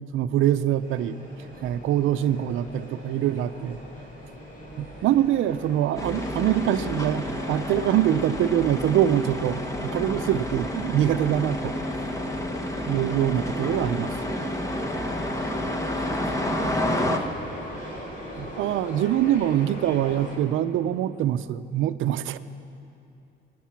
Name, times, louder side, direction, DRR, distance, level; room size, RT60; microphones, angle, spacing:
voice 1, 0.1-1.2 1.6-3.8 4.8-11.7 12.9-14.1 18.4-22.4, right 11 dB, 85° right, 13 dB, 0.6 m, -24 dB
sound 1, 0.8-20.4, equal, 45° left, 4.4 m, -40 dB
sound 2, 6.0-17.2, left 1 dB, 15° left, 1.4 m, -30 dB
voice 2, 14.7-15.2 16.0-17.7, right 4 dB, 45° right, 10 dB, 1.0 m, -48 dB
22.0 x 9.3 x 5.9 m, 2.7 s
cardioid pair, 90°, 20 cm